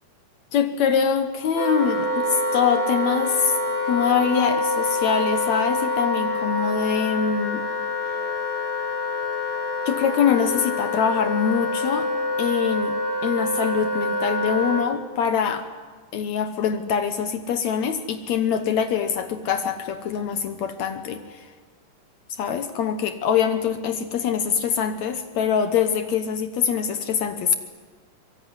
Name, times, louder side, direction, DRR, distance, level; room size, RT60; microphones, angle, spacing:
voice 1, 0.5-3.6 3.8-7.6 9.9-12.1 12.4-13.0 13.2-15.7 16.1-21.5 22.3-27.5, left 7 dB, 70° left, 9 dB, 2.3 m, -24 dB
Wind instrument woodwind instrument, 1.5-14.9, left 2 dB, 5° left, 2.9 m, -26 dB
24.0 x 23.0 x 9.7 m, 1.4 s
omnidirectional pair, 3.5 m